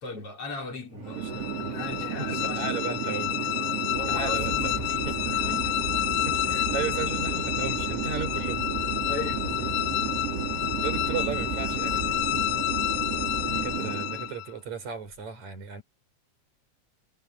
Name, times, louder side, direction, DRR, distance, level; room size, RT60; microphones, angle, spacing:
voice 1, 0.0-1.3 1.6-3.0 3.7-5.9 9.1-9.9, left 3 dB, 50° left, 4.2 m, -38 dB
Chatter / Fixed-wing aircraft airplane, 0.9-14.3, right 7 dB, 55° right, 4.4 m, -33 dB
voice 2, 1.0-1.7 2.5-3.3 4.1-4.8 5.1-5.2 6.3-8.6 10.8-12.2 13.5-15.8, right 6 dB, 70° right, 6.5 m, -35 dB
sound 1, 1.1-14.5, left 19 dB, 80° left, 1.8 m, -30 dB
sound 2, 3.9-13.8, right 2 dB, 30° right, 1.3 m, -38 dB
omnidirectional pair, 3.4 m